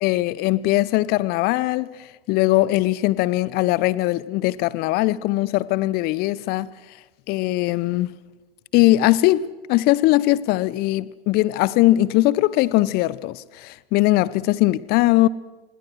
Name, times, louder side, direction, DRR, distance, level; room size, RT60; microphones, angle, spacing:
voice 1, 0.0-1.9 2.3-6.7 7.3-8.1 8.7-15.3, left 17 dB, 30° left, 0.7 m, -20 dB
26.5 x 20.5 x 6.3 m
hypercardioid pair, 105°, 30 cm